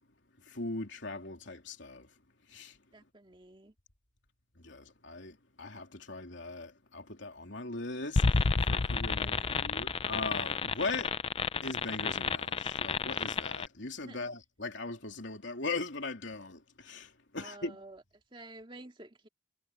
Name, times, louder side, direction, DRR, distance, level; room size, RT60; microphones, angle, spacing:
voice 1, 0.4-2.1 2.5-2.8 4.6-11.2 11.6-17.8, left 3 dB, 75° left, 3.1 m, -40 dB
voice 2, 2.9-3.7 9.1-9.8 13.9-14.2 17.4-18.0 18.3-19.3, right 2 dB, 25° right, 2.3 m, -51 dB
sound 1, 8.2-13.7, left 4 dB, 30° left, 0.4 m, -30 dB
head